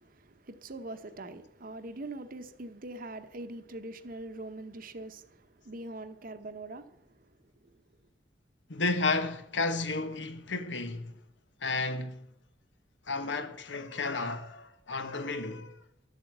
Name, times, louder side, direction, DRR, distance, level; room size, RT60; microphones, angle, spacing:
voice 1, 0.0-7.0, right 2 dB, 50° right, 1.0 m, -43 dB
voice 2, 8.7-11.1 11.6-12.3 13.1-15.8, left 3 dB, 85° left, 1.3 m, -32 dB
12.5 x 8.1 x 8.0 m
head